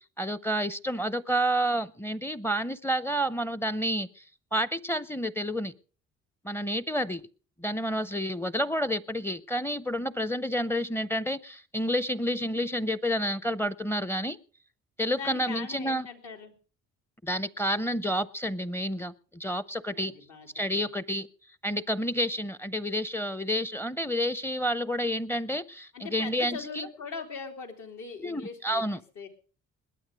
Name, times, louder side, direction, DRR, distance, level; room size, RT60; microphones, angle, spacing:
voice 1, 0.2-4.2 4.5-5.7 6.4-7.2 7.6-14.4 15.0-16.1 17.2-20.1 20.5-21.3 21.6-26.6 28.2-29.0, equal, 10° left, 18 dB, 0.6 m, -29 dB
voice 2, 15.1-16.5 19.9-20.5 20.7-20.9 25.9-28.8 29.1-29.3, left 5 dB, 75° left, 3 dB, 3.1 m, -40 dB
20.5 x 8.9 x 5.0 m, 0.39 s
cardioid pair, 90°, 30 cm